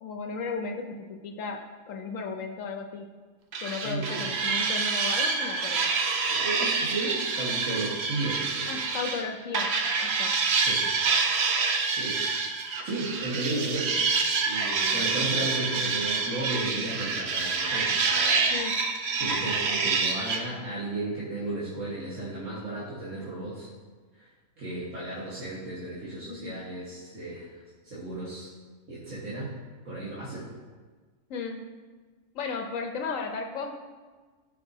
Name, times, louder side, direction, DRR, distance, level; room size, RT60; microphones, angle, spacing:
voice 1, 0.0-3.1 3.6-5.9 8.7-10.4 18.5-18.8 26.3-26.5 31.3-31.6 32.3-33.8, left 4 dB, 80° left, 3 dB, 1.0 m, -35 dB
sound 1, 3.5-9.2 9.5-20.4, right 4 dB, 60° right, 1.0 m, -27 dB
voice 2, 3.8-4.3 6.3-8.8 10.5-10.8 11.9-12.2 12.8-18.5 19.2-23.7 24.2-24.3 24.6-28.5 28.9-29.6 29.9-30.5, right 2 dB, 75° right, -8 dB, 1.8 m, -34 dB
14.5 x 5.3 x 2.7 m, 1.4 s
omnidirectional pair, 1.3 m